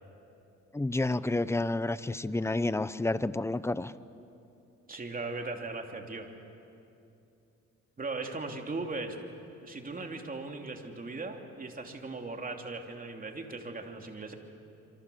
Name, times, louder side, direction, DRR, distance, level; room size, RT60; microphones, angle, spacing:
voice 1, 0.7-3.9, left 2 dB, 10° left, 15 dB, 0.7 m, -30 dB
voice 2, 4.9-6.3 8.0-9.2 9.6-14.3, right 3 dB, 30° right, 3 dB, 3.0 m, -38 dB
27.5 x 25.5 x 7.1 m, 2.7 s
cardioid pair, 90°, 30 cm